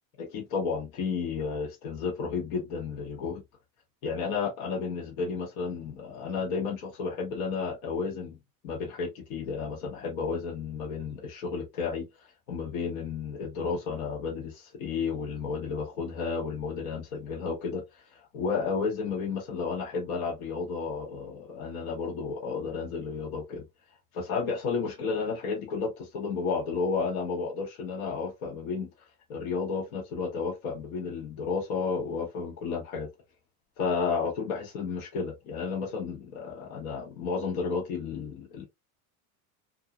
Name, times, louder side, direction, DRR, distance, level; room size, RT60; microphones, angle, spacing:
voice 1, 0.2-3.4 4.0-8.4 8.6-12.0 12.5-23.6 24.1-28.9 29.3-33.1 33.8-38.7, left 5 dB, 80° left, 1.1 m, -32 dB
2.7 x 2.5 x 2.3 m
supercardioid pair, 110°, 42 cm